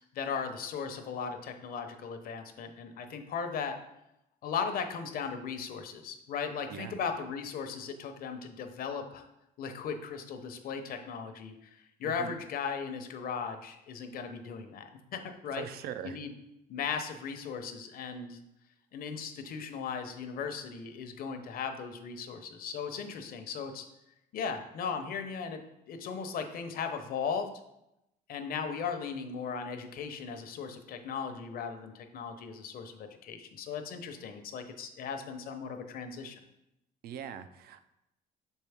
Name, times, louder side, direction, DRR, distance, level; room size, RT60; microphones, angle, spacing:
voice 1, 0.1-3.8 4.4-9.3 9.6-15.7 16.0-16.3 16.7-18.4 18.9-23.9 24.3-25.6 25.9-27.5 28.3-36.4, left 6 dB, 60° left, 7 dB, 0.8 m, -37 dB
voice 2, 12.0-12.4 15.5-16.2 37.0-38.0, right 9 dB, 65° right, 11 dB, 0.5 m, -42 dB
6.3 x 4.5 x 3.5 m, 0.86 s
cardioid pair, 110°, 17 cm